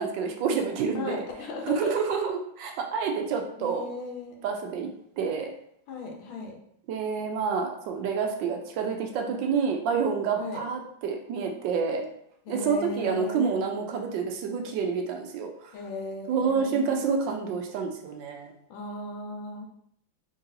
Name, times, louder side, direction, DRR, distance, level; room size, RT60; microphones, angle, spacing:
voice 1, 0.0-1.3 1.8-3.9 4.4-4.9 5.2-5.5 6.9-12.0 12.5-15.8 16.3-18.5, right 5 dB, 75° right, 3 dB, 1.2 m, -28 dB
voice 2, 0.9-1.9 3.6-4.4 5.9-6.6 10.4-10.6 12.5-13.5 15.7-17.0 18.7-19.6, left 3 dB, 90° left, 1 dB, 1.6 m, -36 dB
3.9 x 3.8 x 2.7 m, 0.71 s
omnidirectional pair, 2.2 m